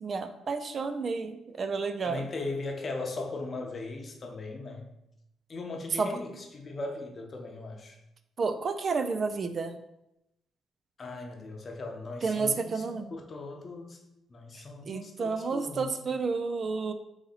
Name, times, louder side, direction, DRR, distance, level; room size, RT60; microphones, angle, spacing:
voice 1, 0.0-2.3 6.0-6.2 8.4-9.8 12.2-13.1 14.9-16.9, right 4 dB, 45° right, 8 dB, 0.3 m, -31 dB
voice 2, 2.0-4.9 5.5-8.0 11.0-14.0 14.3-16.1, left 3 dB, 40° left, 2 dB, 0.8 m, -38 dB
4.0 x 2.8 x 4.0 m, 0.86 s
cardioid pair, 90°, 0 cm